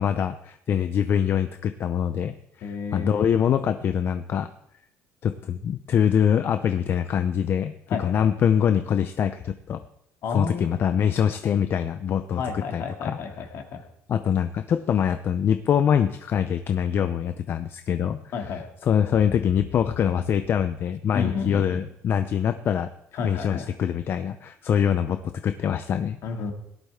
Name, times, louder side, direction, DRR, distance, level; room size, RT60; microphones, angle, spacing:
voice 1, 0.0-4.5 5.2-9.8 10.3-13.2 14.1-18.2 18.8-22.9 23.2-26.2, left 8 dB, 40° left, 10 dB, 0.5 m, -24 dB
voice 2, 2.6-3.2 7.9-8.3 10.2-10.7 12.4-13.8 18.3-18.7 21.1-21.8 23.1-23.7 26.2-26.5, left 5 dB, 60° left, 3 dB, 2.3 m, -31 dB
17.5 x 11.5 x 3.6 m, 0.78 s
cardioid pair, 145°, 6 cm